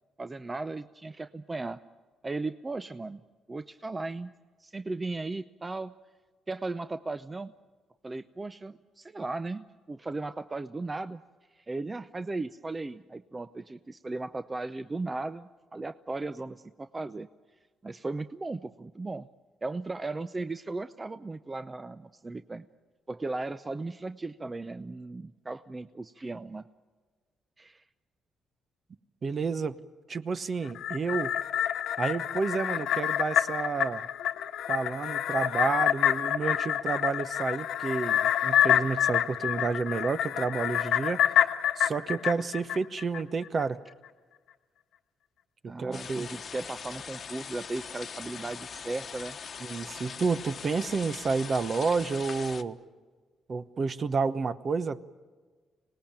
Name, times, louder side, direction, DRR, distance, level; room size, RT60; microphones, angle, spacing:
voice 1, 0.2-1.8 2.2-3.2 3.5-4.3 4.6-5.9 6.5-7.5 8.0-11.2 11.5-17.3 17.8-19.3 19.6-22.6 23.1-26.6 27.6-27.8 45.7-49.4, right 3 dB, 25° right, 11 dB, 0.6 m, -36 dB
voice 2, 29.2-29.8 30.1-31.3 32.0-34.1 34.7-41.2 41.8-43.8 45.6-46.3 49.6-52.8 53.5-55.0, right 4 dB, 45° right, 12 dB, 1.0 m, -30 dB
sound 1, 30.7-43.2 43.6-43.7, left 10 dB, 85° left, 1.4 m, -27 dB
sound 2, 45.9-52.6, left 6 dB, 50° left, 1.2 m, -41 dB
26.0 x 19.0 x 8.9 m, 1.4 s
cardioid pair, 85°, 0 cm